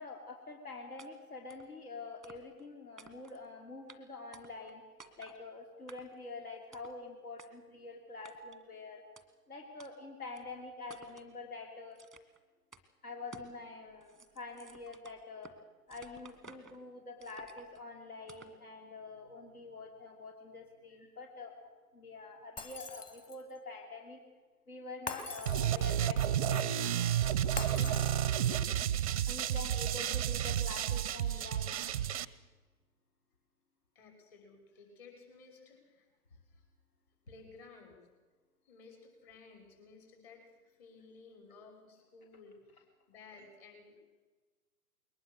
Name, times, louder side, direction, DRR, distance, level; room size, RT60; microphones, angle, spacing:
voice 1, 0.0-4.8 5.2-9.0 9.5-12.0 13.0-15.5 15.9-24.2 24.7-27.2 27.7-28.1 29.3-31.9, left 3 dB, 75° left, 2 dB, 3.1 m, -46 dB
sound 1, 1.0-1.1 1.5-1.7 2.2-2.7 3.0-3.5 3.9-4.0 4.3-4.7 5.0-5.4 5.9-6.3 6.7-7.0 7.4-7.5 8.2-8.6 9.2-9.3 9.8-9.9 10.3-10.4 10.9-11.3 12.0-12.4 12.7-12.8 13.3-13.6 13.9-15.6 15.9-16.8 17.2-17.8 18.3-18.6, right 4 dB, ahead, 1.0 m, -55 dB
Shatter, 22.6-23.5 25.1-26.1 27.6-28.6, left 3 dB, 15° left, 1.6 m, -43 dB
sound 2, 25.5-32.2, right 10 dB, 25° right, 0.5 m, -31 dB
voice 2, 33.9-36.6 37.3-37.9 38.6-44.1, left 4 dB, 35° left, 2 dB, 6.0 m, -56 dB
22.0 x 19.5 x 6.6 m, 1.3 s
figure-of-eight pair, 130°, 45 cm